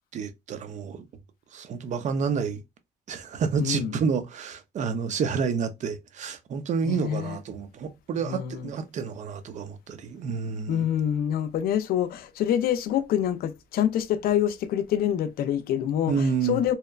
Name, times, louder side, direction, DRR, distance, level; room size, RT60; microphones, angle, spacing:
voice 1, 0.1-1.0 1.5-2.6 3.1-10.9 16.1-16.6, right 5 dB, 45° right, 0.5 m, -29 dB
voice 2, 3.6-4.0 6.8-7.4 8.2-8.7 10.7-16.7, left 10 dB, 65° left, 0.4 m, -26 dB
2.8 x 2.2 x 2.3 m
cardioid pair, 110°, 17 cm